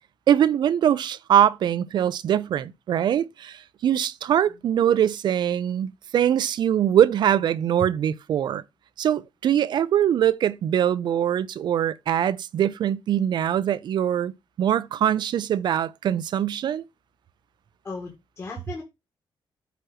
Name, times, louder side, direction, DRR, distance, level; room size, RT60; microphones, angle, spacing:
voice 1, 0.3-3.6 3.8-8.6 9.0-14.3 14.6-16.8, right 10 dB, 65° right, 0.6 m, -22 dB
voice 2, 4.5-5.0 17.8-18.8, left 3 dB, 30° left, 1.8 m, -38 dB
8.2 x 3.0 x 6.1 m
wide cardioid pair, 160°, 8 cm